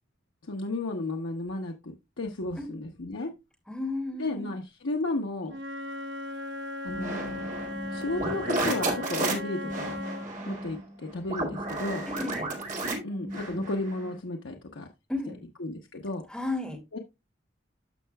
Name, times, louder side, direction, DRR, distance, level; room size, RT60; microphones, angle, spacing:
voice 1, 0.4-3.3 4.2-5.6 6.8-7.5 7.9-10.0 10.5-12.1 13.0-14.9 15.6-16.2 16.9-17.0, left 2 dB, 85° left, 0.9 m, -33 dB
voice 2, 3.7-4.5 12.1-12.5 15.1-15.5 16.3-16.8, left 2 dB, 5° left, 2.3 m, -33 dB
Wind instrument woodwind instrument, 5.5-10.3, left 1 dB, 75° right, 1.0 m, -37 dB
sound 1, 6.9-14.2, right 2 dB, 40° right, 2.2 m, -33 dB
13.0 x 5.6 x 2.3 m
head